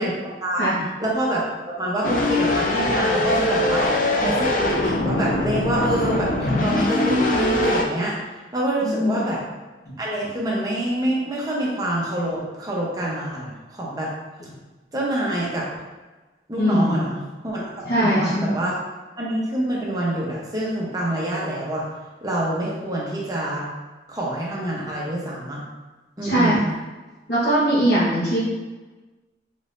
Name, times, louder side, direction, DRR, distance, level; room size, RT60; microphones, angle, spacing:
voice 1, 0.0-0.6 1.0-1.4 1.8-3.9 4.2-8.2 8.5-9.4 10.0-14.1 14.9-15.7 16.5-17.6 18.0-18.8 19.2-21.8 22.2-23.7 24.1-25.6 26.2-26.7, right 1 dB, 20° right, -5 dB, 0.8 m, -26 dB
sound 1, 2.0-7.8, left 2 dB, 50° left, 0.4 m, -22 dB
voice 2, 8.8-9.2 16.6-17.0 17.9-18.6 26.2-26.6 27.3-28.4, equal, 70° left, -10 dB, 1.3 m, -20 dB
4.0 x 3.8 x 2.6 m, 1.2 s
head